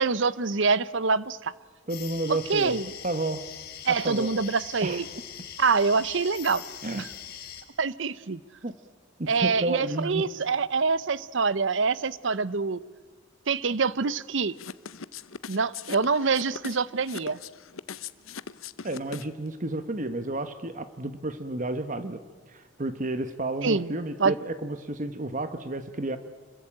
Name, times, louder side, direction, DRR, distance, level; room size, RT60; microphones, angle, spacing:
voice 1, 0.0-1.5 2.5-2.9 3.9-5.1 5.6-6.6 6.9-7.1 7.8-8.4 9.3-12.8 13.5-14.6 15.5-17.4 23.6-23.9 24.2-24.3, right 4 dB, 65° right, 19 dB, 0.8 m, -25 dB
sound 1, 1.9-7.6, left 9 dB, 50° left, 2.8 m, -42 dB
voice 2, 1.9-2.8 3.0-3.4 3.9-4.3 4.8-5.0 6.8-7.1 8.6-8.8 9.2-10.3 18.8-22.2 22.5-26.2, right 2 dB, 40° right, 11 dB, 1.0 m, -31 dB
sound 2, 14.5-19.5, left 6 dB, 85° left, 0.8 m, -40 dB
27.0 x 22.0 x 8.8 m, 1.4 s
head